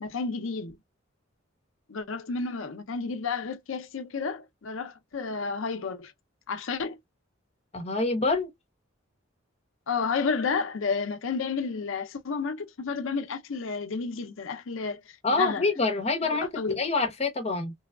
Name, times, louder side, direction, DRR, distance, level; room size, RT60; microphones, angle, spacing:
voice 1, 0.0-0.8 1.9-6.1 6.5-7.0 9.9-15.7 16.2-16.8, left 5 dB, 75° left, 0.6 m, -31 dB
voice 2, 7.7-8.5 15.2-17.7, left 3 dB, 30° left, 0.8 m, -26 dB
3.3 x 2.2 x 2.3 m
head